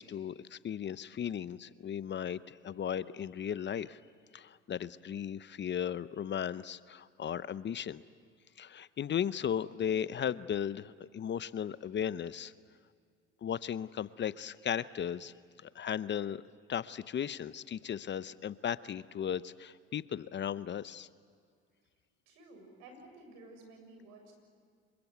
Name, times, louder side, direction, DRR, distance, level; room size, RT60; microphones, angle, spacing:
voice 1, 0.0-4.0 4.3-8.0 8.6-12.5 13.4-15.3 15.6-16.4 16.7-21.1, left 9 dB, 40° left, 16 dB, 0.8 m, -36 dB
voice 2, 22.3-24.3, right 2 dB, 75° right, 4 dB, 7.1 m, -53 dB
27.0 x 24.0 x 8.2 m, 2.1 s
hypercardioid pair, 65°, 29 cm